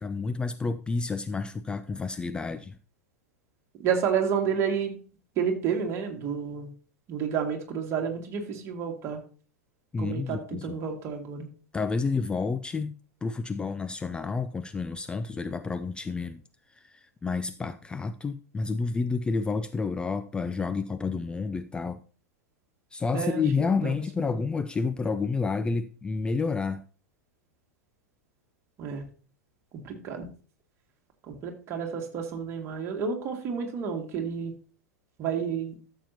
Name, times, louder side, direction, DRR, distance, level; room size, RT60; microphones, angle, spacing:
voice 1, 0.0-2.8 9.9-10.8 11.7-16.4 16.7-22.0 22.9-26.8, left 4 dB, 10° left, 0.3 m, -30 dB
voice 2, 3.8-4.9 5.4-6.7 7.1-9.2 10.0-11.5 23.1-24.4 28.8-29.0 29.8-30.2 31.3-34.5 35.2-35.7, right 7 dB, 30° right, 2.0 m, -30 dB
13.0 x 7.1 x 2.8 m
figure-of-eight pair, 90°, 9 cm